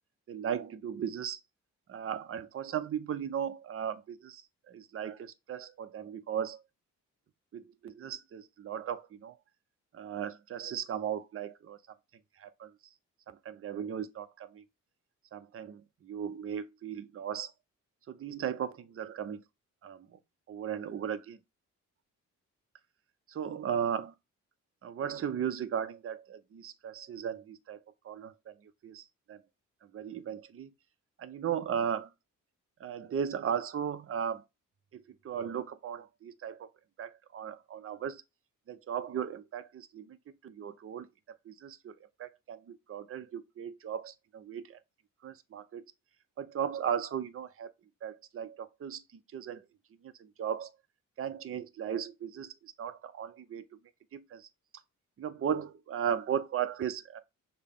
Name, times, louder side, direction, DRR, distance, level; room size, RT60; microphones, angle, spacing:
voice 1, 0.3-1.4 1.9-6.6 7.5-9.4 9.9-11.8 12.4-12.7 13.3-14.6 15.3-17.5 18.1-19.4 19.8-20.1 20.5-21.4 23.3-24.1 24.8-27.8 28.0-28.5 28.8-29.4 29.8-30.7 31.2-32.1 32.8-34.4 34.9-36.7 37.0-38.2 38.7-40.2 40.4-41.1 41.5-41.9 42.2-44.8 45.2-45.8 46.4-47.7 48.0-49.0 49.3-49.6 50.0-50.7 51.2-53.6 54.1-54.5 55.2-57.2, right 8 dB, 45° right, 0.6 m, -36 dB
6.5 x 2.2 x 3.6 m
cardioid pair, 85°, 32 cm